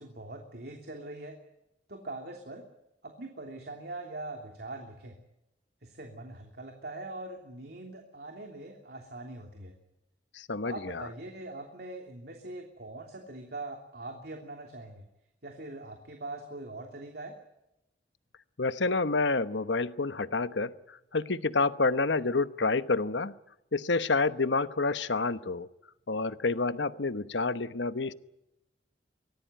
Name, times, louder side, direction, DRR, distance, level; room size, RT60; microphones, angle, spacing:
voice 1, 0.0-1.3 1.9-2.7 3.0-5.2 5.8-9.8 10.6-15.0 15.4-17.4, right 2 dB, 60° right, 3 dB, 3.2 m, -42 dB
voice 2, 10.3-11.1 18.6-23.3 23.7-25.7 26.1-28.1, left 3 dB, 90° left, 13 dB, 1.1 m, -28 dB
24.5 x 18.0 x 9.2 m, 0.89 s
head